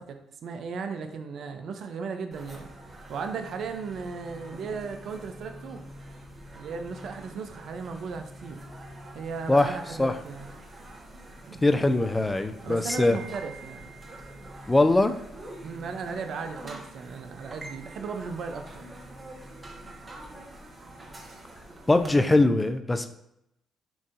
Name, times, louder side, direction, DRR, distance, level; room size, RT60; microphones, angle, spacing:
voice 1, 0.0-2.7 3.1-5.8 6.5-8.6 9.1-10.5 11.5-11.6 12.6-13.9 15.6-18.9, right 5 dB, 65° right, 6 dB, 0.5 m, -36 dB
sound 1, 2.3-22.1, right 1 dB, 40° right, 1.1 m, -45 dB
voice 2, 11.6-13.2 14.7-15.2 21.9-23.1, left 2 dB, 20° left, 8 dB, 0.5 m, -22 dB
7.0 x 2.6 x 2.5 m, 0.81 s
supercardioid pair, 55°, 0 cm